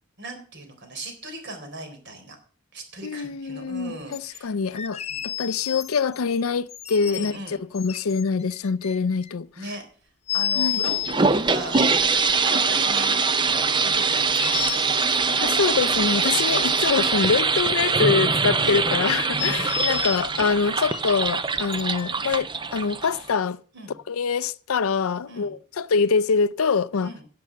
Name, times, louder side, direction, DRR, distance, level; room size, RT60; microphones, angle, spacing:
voice 1, 0.2-2.4 2.7-4.6 5.1-5.3 7.1-7.6 9.6-9.8 10.3-13.5 13.8-15.4 18.6-18.8 19.3-19.7 23.7-24.0 25.3-25.5 27.0-27.2, right 2 dB, 55° right, 3.8 m, -39 dB
voice 2, 3.0-5.0 5.2-9.5 10.6-10.8 15.4-23.6 24.1-27.1, left 5 dB, 70° left, 0.5 m, -24 dB
sound 1, 4.1-4.4 4.7-6.2 6.7-7.4 7.7-9.3 10.3-11.2 11.6-11.9 12.9-13.6 14.0-15.0 15.9-17.1 17.4-18.3 18.7-18.8 19.4-20.2 20.9-21.0 21.7-22.1, left 10 dB, 30° left, 0.6 m, -31 dB
sound 2, 10.8-23.4, right 4 dB, 20° right, 0.6 m, -23 dB
11.0 x 7.7 x 7.8 m
head